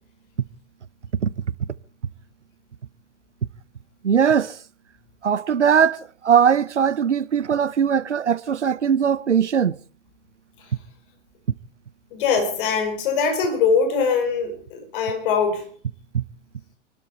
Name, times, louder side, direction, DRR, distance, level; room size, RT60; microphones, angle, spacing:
voice 1, 4.0-4.6 5.2-9.8 16.1-16.2, right 7 dB, 75° right, 0.8 m, -20 dB
voice 2, 12.1-15.7, left 5 dB, 45° left, 4.8 m, -22 dB
27.5 x 12.5 x 4.2 m
figure-of-eight pair, 100°, 35 cm